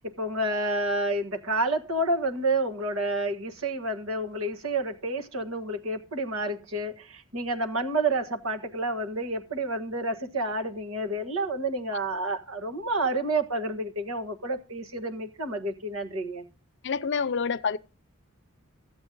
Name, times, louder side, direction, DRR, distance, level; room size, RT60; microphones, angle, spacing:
voice 1, 0.0-16.4, right 2 dB, 75° right, 1.5 m, -29 dB
voice 2, 16.8-17.8, left 5 dB, 55° left, 0.5 m, -27 dB
14.5 x 8.1 x 3.8 m
head